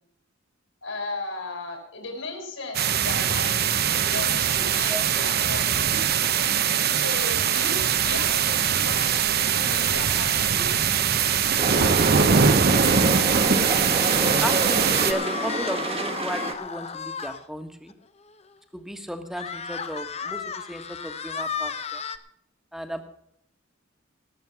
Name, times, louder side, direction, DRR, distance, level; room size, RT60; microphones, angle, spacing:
voice 1, 0.8-6.0 6.9-10.8, left 3 dB, 75° left, 2 dB, 5.9 m, -36 dB
sound 1, 2.7-15.1, right 7 dB, 50° right, 0.9 m, -22 dB
sound 2, 11.6-16.5, right 2 dB, 30° right, 1.4 m, -28 dB
sound 3, 14.0-17.4 17.9-18.0 18.3-18.4 19.3-22.2, left 6 dB, 30° left, 0.9 m, -34 dB
voice 2, 14.4-17.9 18.7-20.4 20.7-22.0 22.7-23.1, equal, ahead, 7 dB, 1.5 m, -34 dB
19.0 x 7.7 x 5.9 m, 0.69 s
head